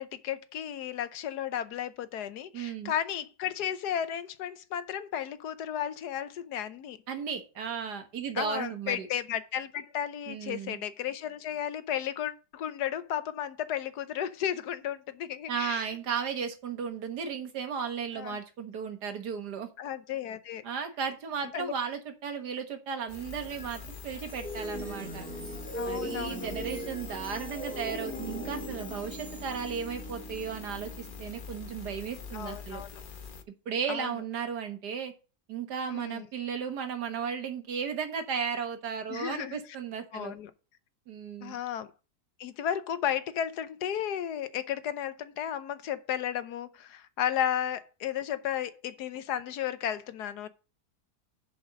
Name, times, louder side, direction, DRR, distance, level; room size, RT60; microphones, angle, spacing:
voice 1, 0.0-7.0 8.3-15.9 18.1-18.4 19.8-20.6 21.5-21.7 25.7-26.5 32.3-33.0 33.9-34.2 35.9-36.3 39.1-39.6 40.1-40.5 41.4-41.9 42.4-50.5, left 10 dB, 80° left, 1.3 m, -34 dB
voice 2, 2.5-2.9 7.1-9.1 10.3-10.8 15.5-19.7 20.6-25.3 25.8-32.8 33.7-35.1 35.5-40.4 41.1-41.6, right 6 dB, 80° right, 1.9 m, -35 dB
sound 1, 23.1-33.4, left 5 dB, 40° left, 0.8 m, -44 dB
sound 2, 23.3-32.5, right 1 dB, 5° left, 1.8 m, -41 dB
7.3 x 5.4 x 6.3 m
omnidirectional pair, 1.7 m